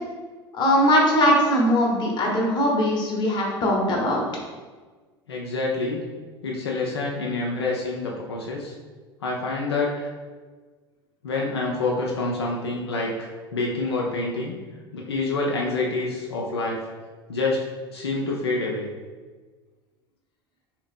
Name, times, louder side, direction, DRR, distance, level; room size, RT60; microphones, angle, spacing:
voice 1, 0.5-4.3, equal, 35° left, -1 dB, 1.0 m, -20 dB
voice 2, 5.3-6.0 6.4-8.7 9.2-10.1 11.2-14.6 14.9-16.8 17.3-17.6 17.9-18.9, left 3 dB, 75° left, -2 dB, 0.5 m, -27 dB
3.9 x 2.8 x 3.4 m, 1.4 s
figure-of-eight pair, 70°, 14 cm